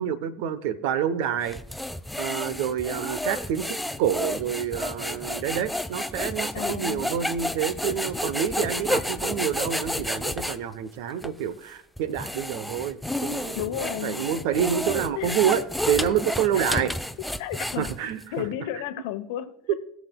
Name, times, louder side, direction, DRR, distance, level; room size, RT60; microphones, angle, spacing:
voice 1, 0.0-1.6 2.2-16.9 17.8-18.2, right 9 dB, 60° right, 15 dB, 0.7 m, -28 dB
sound 1, 1.4-10.6 11.2-11.3 12.0-18.2, left 1 dB, 5° left, 0.5 m, -31 dB
voice 2, 6.5-7.1 13.5-14.2 15.1-15.4 16.5-16.9 17.4-17.8 18.3-19.7, left 12 dB, 65° left, 9 dB, 0.9 m, -33 dB
20.5 x 7.1 x 2.2 m, 0.73 s
figure-of-eight pair, 70°, 0 cm